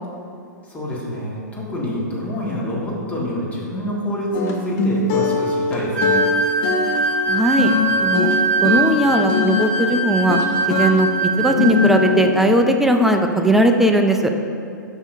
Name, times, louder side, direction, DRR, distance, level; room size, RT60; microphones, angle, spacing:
voice 1, 0.6-6.2, left 1 dB, 15° left, -5 dB, 1.5 m, -26 dB
sound 1, 4.3-9.7 10.3-11.0 11.4-12.3, left 5 dB, 40° left, 0.8 m, -21 dB
sound 2, 5.9-12.0, right 3 dB, 55° right, 1.0 m, -22 dB
voice 2, 7.3-7.7 8.0-8.3 8.6-10.4 10.7-14.3, right 1 dB, 5° right, 4 dB, 0.4 m, -18 dB
9.6 x 6.1 x 2.6 m, 2.5 s
figure-of-eight pair, 110°, 10 cm